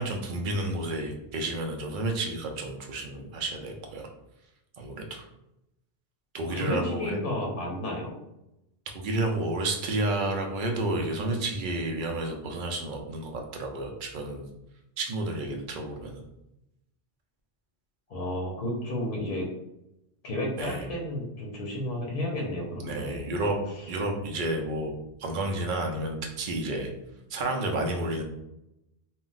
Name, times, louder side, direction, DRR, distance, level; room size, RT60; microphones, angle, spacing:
voice 1, 0.0-4.1 4.8-5.2 6.3-7.2 8.9-14.5 15.0-16.2 20.6-20.9 22.8-23.6 23.9-24.9 25.2-26.9 27.3-28.2, right 2 dB, 60° right, 2 dB, 0.6 m, -31 dB
voice 2, 6.5-8.1 18.1-19.5 20.2-23.2 23.8-24.0, left 1 dB, 60° left, -2 dB, 0.7 m, -32 dB
2.2 x 2.0 x 3.8 m, 0.87 s
omnidirectional pair, 1.1 m